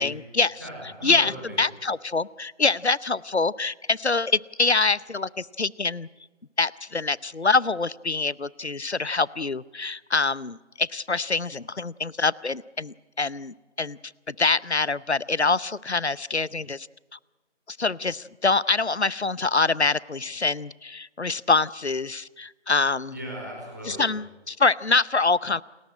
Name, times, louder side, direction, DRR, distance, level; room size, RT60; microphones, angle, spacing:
voice 1, 0.0-0.6 1.0-6.1 6.6-14.0 14.3-16.9 17.7-23.2 23.8-25.6, left 3 dB, 65° left, 22 dB, 0.7 m, -25 dB
voice 2, 0.6-1.6 23.1-24.1, equal, 15° right, -2 dB, 4.6 m, -37 dB
29.5 x 14.0 x 9.8 m, 1.2 s
figure-of-eight pair, 175°, 35 cm